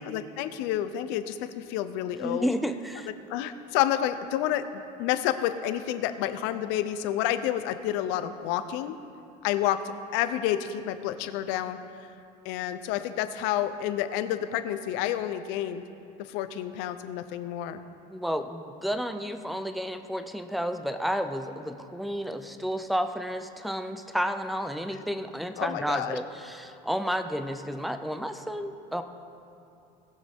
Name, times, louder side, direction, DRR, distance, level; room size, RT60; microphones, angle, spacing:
voice 1, 0.0-2.5 3.3-4.6 5.0-9.0 9.4-9.8 10.1-11.8 12.4-15.8 16.3-17.8 25.6-26.2, left 12 dB, 70° left, 11 dB, 0.7 m, -29 dB
voice 2, 2.2-3.1 18.1-29.0, equal, ahead, 9 dB, 0.4 m, -31 dB
19.0 x 6.5 x 3.6 m, 2.8 s
cardioid pair, 150°, 19 cm